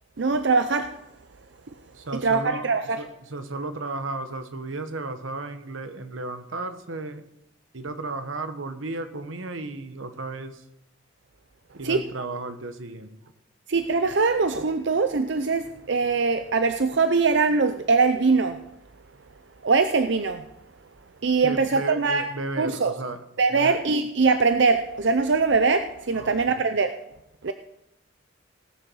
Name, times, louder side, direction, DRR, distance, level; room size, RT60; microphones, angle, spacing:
voice 1, 0.2-0.9 2.2-3.0 11.8-12.0 13.7-18.6 19.6-20.4 21.2-22.2 22.6-22.9 23.4-26.9 27.4-27.5, right 4 dB, 60° right, 9 dB, 0.6 m, -22 dB
voice 2, 1.9-7.2 7.7-10.6 11.7-13.2 21.4-23.2 23.5-23.8 26.1-26.7, right 2 dB, 80° right, 9 dB, 1.2 m, -34 dB
18.5 x 6.8 x 6.3 m, 0.84 s
head